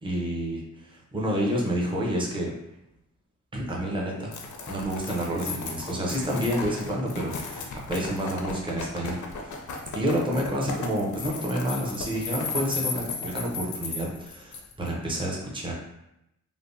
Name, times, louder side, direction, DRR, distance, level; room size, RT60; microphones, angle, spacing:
voice 1, 0.0-2.5 3.5-4.3 4.7-9.7 9.9-15.7, equal, 15° right, -3 dB, 0.6 m, -29 dB
sound 1, 4.3-14.9, left 4 dB, 70° left, 0.5 m, -35 dB
3.3 x 2.1 x 2.5 m, 0.84 s
wide cardioid pair, 130°, 31 cm